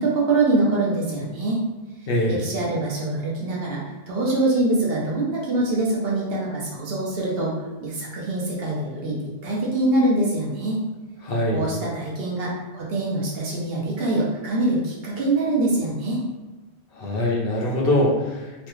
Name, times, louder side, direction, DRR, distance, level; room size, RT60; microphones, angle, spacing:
voice 1, 0.0-1.6 2.3-10.8 11.5-16.2, right 2 dB, 65° right, -4 dB, 1.0 m, -24 dB
voice 2, 11.2-11.6 17.0-18.7, left 1 dB, 65° left, -2 dB, 0.8 m, -23 dB
3.1 x 2.4 x 3.0 m, 1.2 s
omnidirectional pair, 1.1 m